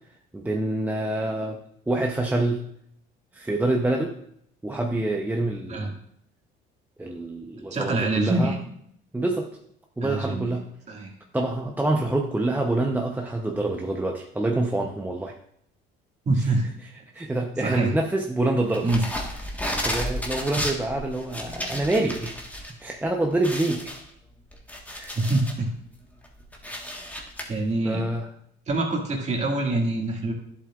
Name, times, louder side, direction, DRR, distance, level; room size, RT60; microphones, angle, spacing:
voice 1, 0.3-1.6 1.9-2.6 3.3-4.1 4.6-5.9 7.0-8.6 9.1-9.5 10.0-10.6 11.3-15.3 16.4-16.5 16.8-18.9 19.8-22.4 22.7-23.9 24.9-25.2 27.1-27.3 27.8-28.3, right 2 dB, 10° right, 1 dB, 0.7 m, -26 dB
voice 2, 7.7-8.6 10.0-10.5 10.9-11.1 16.3-16.7 17.6-17.9 18.8-19.0 25.1-25.7 27.5-28.1 28.7-30.3, right 2 dB, 35° right, 0 dB, 2.0 m, -25 dB
sound 1, 18.7-22.7 23.0-23.1 23.4-25.6 26.1-27.4, left 1 dB, 5° left, 1.4 m, -32 dB
11.0 x 7.4 x 2.4 m, 0.70 s
cardioid pair, 105°, 20 cm